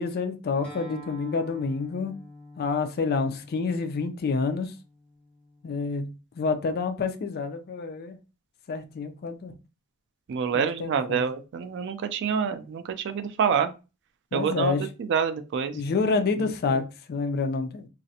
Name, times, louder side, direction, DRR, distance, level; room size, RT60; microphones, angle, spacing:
voice 1, 0.0-2.1 2.6-4.7 5.6-8.2 8.7-9.5 10.5-11.2 14.3-14.8 15.7-16.8 17.1-17.9, left 4 dB, 45° left, 0.4 m, -28 dB
Acoustic guitar, 0.6-5.8, left 1 dB, 5° left, 1.0 m, -48 dB
voice 2, 10.3-13.7 14.3-14.7 15.0-15.8 16.4-16.8, right 6 dB, 55° right, 0.3 m, -27 dB
2.4 x 2.0 x 2.6 m
head